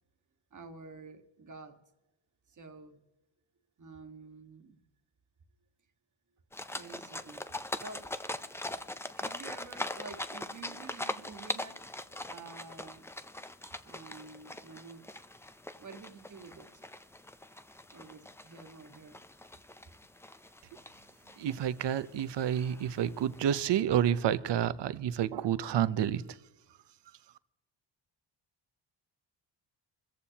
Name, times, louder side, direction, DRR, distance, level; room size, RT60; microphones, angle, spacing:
voice 1, 0.5-1.8 2.5-3.0 3.8-4.8 6.7-7.4 7.8-8.2 8.6-8.8 9.1-13.1 13.8-15.2 15.8-16.7 17.9-19.2 19.7-20.0, right 4 dB, 40° right, 1.6 m, -50 dB
sound 1, 6.5-23.7, left 1 dB, 5° left, 0.5 m, -42 dB
voice 2, 21.4-26.2, right 10 dB, 65° right, 0.8 m, -29 dB
26.5 x 14.5 x 2.9 m
cardioid pair, 105°, 46 cm